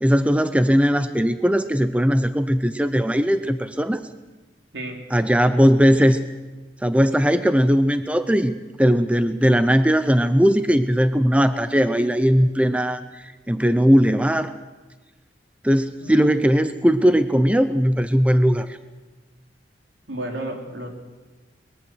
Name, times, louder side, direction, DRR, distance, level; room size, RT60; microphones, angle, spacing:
voice 1, 0.0-4.0 5.1-6.2 6.8-14.5 15.6-18.8, equal, 5° right, 10 dB, 0.6 m, -19 dB
voice 2, 16.0-16.6 20.1-20.9, right 1 dB, 80° right, 1 dB, 4.0 m, -32 dB
23.0 x 21.5 x 6.3 m, 1.2 s
head